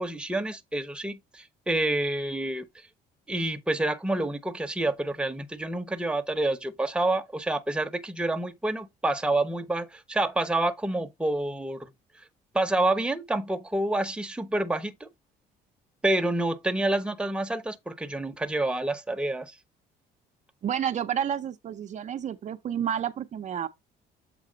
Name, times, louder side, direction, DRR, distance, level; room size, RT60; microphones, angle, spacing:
voice 1, 0.0-2.7 3.3-11.9 12.5-15.1 16.0-19.5, right 2 dB, 5° right, 0.8 m, -28 dB
voice 2, 20.6-23.7, right 9 dB, 45° right, 0.6 m, -30 dB
7.6 x 4.1 x 3.9 m
cardioid pair, 110°, 17 cm